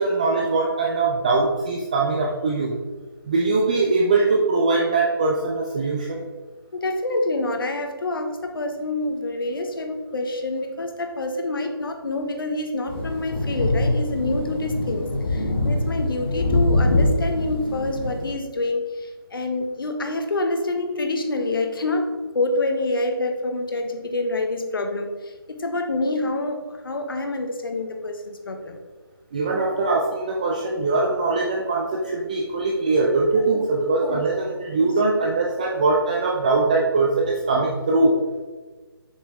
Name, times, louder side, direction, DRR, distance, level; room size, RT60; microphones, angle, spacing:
voice 1, 0.0-2.8 3.3-6.2 29.3-38.1, right 3 dB, 20° right, -1 dB, 0.4 m, -21 dB
voice 2, 6.7-28.8 33.4-33.5 34.0-34.2 34.8-35.0, left 2 dB, 65° left, 5 dB, 0.9 m, -27 dB
sound 1, 12.9-18.3, left 2 dB, 25° left, 1.5 m, -23 dB
7.0 x 5.0 x 3.5 m, 1.3 s
figure-of-eight pair, 160°, 13 cm